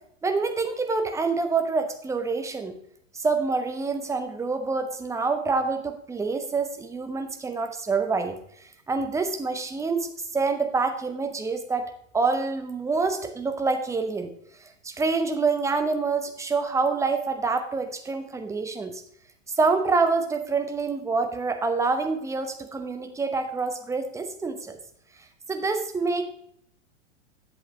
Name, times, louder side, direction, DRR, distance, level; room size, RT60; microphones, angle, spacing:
voice 1, 0.2-2.8 3.1-8.4 8.9-14.3 14.8-19.0 19.6-24.8 25.5-26.2, right 4 dB, 10° right, 7 dB, 0.8 m, -26 dB
11.0 x 7.6 x 3.1 m, 0.70 s
figure-of-eight pair, 100°, 38 cm